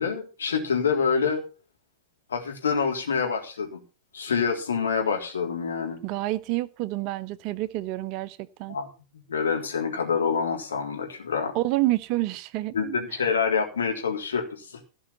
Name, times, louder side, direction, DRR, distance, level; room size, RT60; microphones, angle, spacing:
voice 1, 0.0-1.4 2.3-3.8 4.1-6.0 8.7-8.9 9.3-11.5 12.7-14.7, left 6 dB, 70° left, 3.6 m, -26 dB
voice 2, 6.0-8.8 11.5-13.0, right 17 dB, 45° right, 0.8 m, -28 dB
16.5 x 5.5 x 7.2 m
figure-of-eight pair, 90°, 0 cm